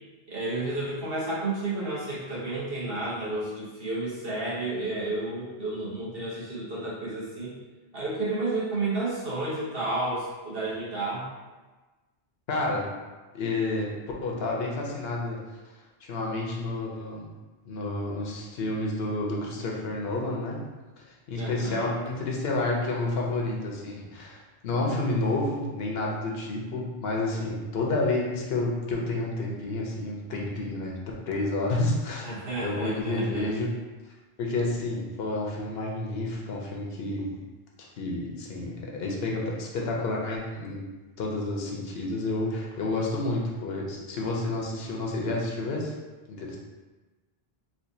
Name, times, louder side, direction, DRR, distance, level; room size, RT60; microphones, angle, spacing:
voice 1, 0.3-7.5 7.9-11.3 21.4-21.9 32.2-33.5, right 2 dB, 65° right, -8 dB, 1.4 m, -31 dB
voice 2, 12.5-12.9 13.3-13.9 14.2-15.4 16.0-17.2 17.6-20.6 21.3-30.9 31.3-32.4 32.6-33.7 34.4-37.3 37.8-40.8 41.2-45.9 46.3-46.6, left 2 dB, 75° left, -2 dB, 0.9 m, -30 dB
4.2 x 2.4 x 2.7 m, 1.2 s
omnidirectional pair, 1.0 m